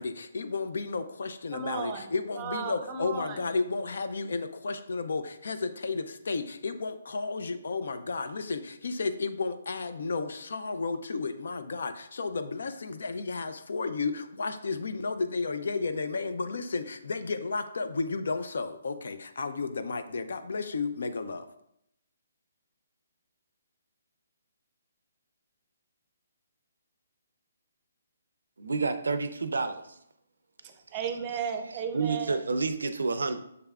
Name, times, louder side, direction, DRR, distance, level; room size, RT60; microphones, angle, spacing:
voice 1, 0.0-21.5, left 4 dB, 70° left, 10 dB, 0.4 m, -33 dB
voice 2, 1.5-2.1 2.4-3.4 30.6-32.4, right 6 dB, 25° right, 6 dB, 0.5 m, -35 dB
voice 3, 28.6-29.8 31.9-33.4, right 4 dB, 85° right, 10 dB, 0.4 m, -29 dB
6.6 x 3.4 x 2.3 m, 0.75 s
hypercardioid pair, 155°, 0 cm